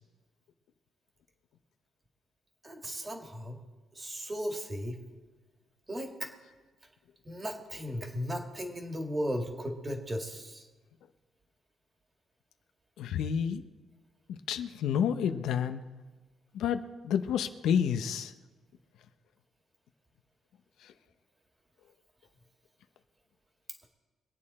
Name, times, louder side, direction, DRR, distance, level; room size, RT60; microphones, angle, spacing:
voice 1, 2.6-3.6 3.9-5.0 5.9-6.3 7.2-10.7, equal, 20° right, 2 dB, 2.0 m, -36 dB
voice 2, 13.0-13.6 14.3-15.8 16.5-18.3, left 8 dB, 90° left, 9 dB, 0.7 m, -30 dB
23.5 x 8.7 x 4.2 m, 1.3 s
cardioid pair, 130°, 0 cm